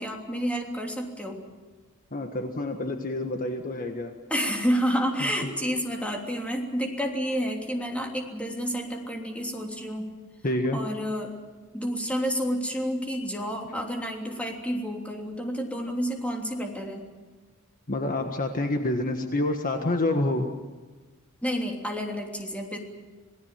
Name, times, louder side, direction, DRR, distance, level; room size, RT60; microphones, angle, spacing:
voice 1, 0.0-1.4 4.3-10.1 10.7-11.3 11.7-17.0 21.4-22.8, equal, 5° left, 1 dB, 3.1 m, -30 dB
voice 2, 2.1-4.1 5.2-5.5 10.4-10.8 17.9-20.5, left 2 dB, 40° left, 4 dB, 1.6 m, -28 dB
27.5 x 19.0 x 7.5 m, 1.3 s
head